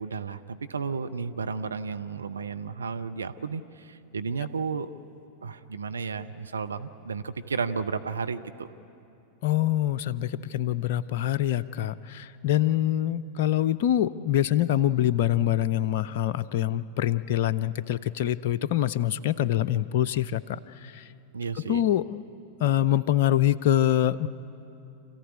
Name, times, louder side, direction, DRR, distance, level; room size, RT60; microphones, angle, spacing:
voice 1, 0.0-5.0 5.4-8.7 21.3-21.9, right 5 dB, 75° right, 9 dB, 0.7 m, -33 dB
voice 2, 9.4-21.1 21.7-22.2 22.6-24.3, left 12 dB, 50° left, 13 dB, 0.5 m, -25 dB
27.0 x 15.0 x 9.7 m, 2.8 s
figure-of-eight pair, 90°, 0 cm